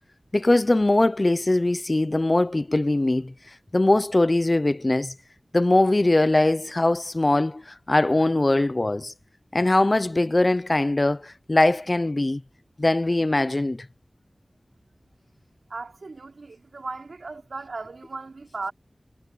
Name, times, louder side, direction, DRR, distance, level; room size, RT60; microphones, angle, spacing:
voice 1, 0.3-3.3 3.7-5.1 5.5-9.1 9.5-12.4 12.8-13.9, left 2 dB, 40° left, 0.6 m, -21 dB
voice 2, 15.7-18.7, right 3 dB, 85° right, 3.6 m, -36 dB
wide cardioid pair, 55°, 0 cm